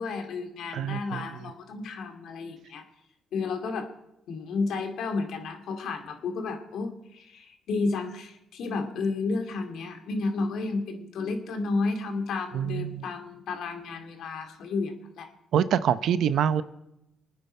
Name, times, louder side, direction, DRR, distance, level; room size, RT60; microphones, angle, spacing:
voice 1, 0.0-2.8 3.3-3.9 4.3-15.3, left 3 dB, 75° left, 5 dB, 2.3 m, -32 dB
voice 2, 0.7-1.2 12.5-13.0 15.5-16.6, right 9 dB, 70° right, 14 dB, 0.8 m, -25 dB
25.5 x 9.6 x 4.4 m, 0.88 s
cardioid pair, 90°, 0 cm